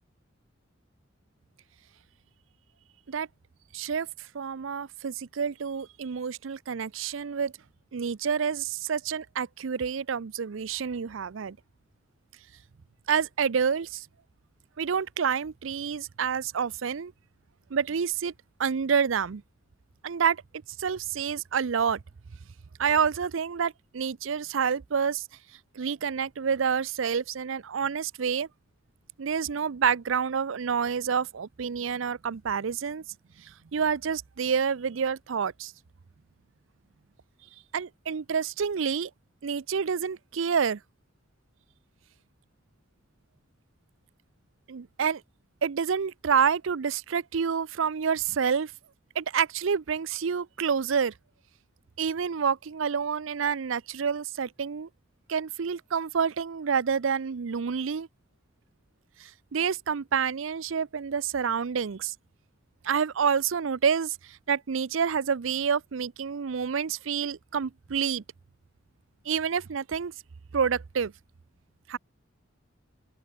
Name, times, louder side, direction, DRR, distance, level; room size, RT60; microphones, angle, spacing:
voice 1, 3.7-4.1 4.3-7.5 7.9-11.6 13.1-14.1 14.8-17.1 17.7-18.3 18.6-19.4 20.0-20.4 20.8-22.0 22.8-25.2 25.8-28.5 29.2-33.0 33.4-35.7 37.7-39.1 39.4-40.8 44.7-45.2 45.6-48.7 49.2-51.1 52.0-54.9 55.3-58.1 59.2-62.1 62.8-68.2 69.3-70.1 70.5-71.1 71.9-72.0, right 6 dB, 75° right, 0.5 m, -28 dB
open air
head